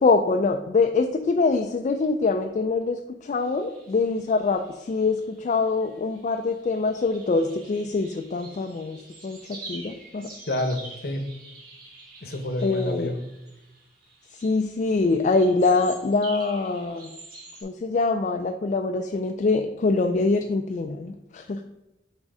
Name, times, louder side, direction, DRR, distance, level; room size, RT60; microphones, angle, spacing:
voice 1, 0.0-9.0 9.2-10.3 12.6-13.1 14.3-17.1 17.6-21.6, left 3 dB, 40° left, 5 dB, 0.3 m, -24 dB
sound 1, 3.3-17.6, right 3 dB, 50° right, 2.1 m, -47 dB
voice 2, 10.5-11.2 12.2-13.2, left 1 dB, 60° left, 6 dB, 0.8 m, -29 dB
6.4 x 3.7 x 4.7 m, 0.98 s
head